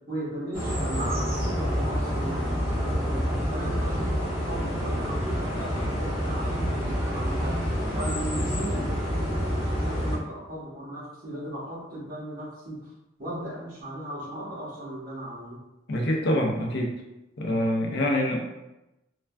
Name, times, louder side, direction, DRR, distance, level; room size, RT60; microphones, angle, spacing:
voice 1, 0.1-3.2 3.5-7.6 7.9-12.9 13.2-15.6, right 1 dB, 45° right, -6 dB, 1.0 m, -37 dB
sound 1, 0.5-10.2, equal, 25° right, 1.3 m, -28 dB
voice 2, 15.9-17.0 17.4-18.4, left 1 dB, 55° left, 1 dB, 0.4 m, -25 dB
3.3 x 2.2 x 2.3 m, 0.96 s
head